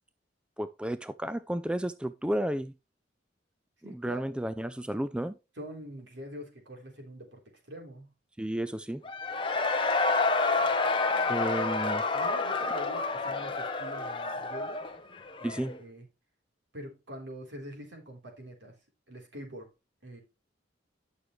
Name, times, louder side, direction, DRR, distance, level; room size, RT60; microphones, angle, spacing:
voice 1, 0.6-2.7 3.9-5.4 8.4-9.0 11.3-12.0 15.4-15.8, right 1 dB, 5° right, 0.3 m, -32 dB
voice 2, 3.8-4.2 5.6-8.1 12.1-14.9 15.4-16.1 16.7-18.7 19.1-19.7 20.0-20.2, equal, 75° right, 3.7 m, -44 dB
Cheering / Crowd, 9.0-15.8, left 3 dB, 30° left, 0.9 m, -29 dB
11.0 x 6.5 x 3.1 m
head